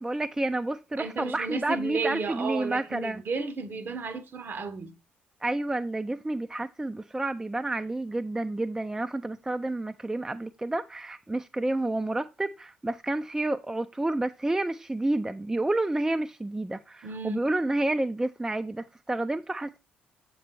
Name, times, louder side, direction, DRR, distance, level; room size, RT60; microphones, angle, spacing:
voice 1, 0.0-3.2 5.4-19.8, right 2 dB, 10° right, 0.3 m, -30 dB
voice 2, 1.0-4.9 17.0-17.4, right 4 dB, 45° right, 0.8 m, -33 dB
7.4 x 3.9 x 4.4 m
figure-of-eight pair, 45°, 5 cm